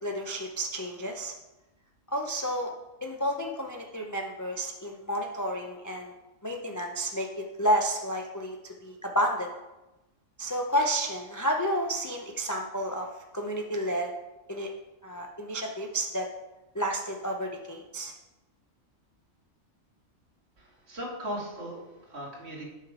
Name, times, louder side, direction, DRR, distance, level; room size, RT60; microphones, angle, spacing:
voice 1, 0.0-1.3 2.1-2.7 3.0-6.1 6.4-9.5 10.4-13.1 13.3-14.1 14.5-14.7 15.0-16.3 16.7-18.1, equal, 25° left, 1 dB, 0.4 m, -31 dB
voice 2, 20.6-22.6, equal, 50° right, -4 dB, 2.4 m, -38 dB
8.8 x 5.7 x 4.9 m, 1.0 s
omnidirectional pair, 1.4 m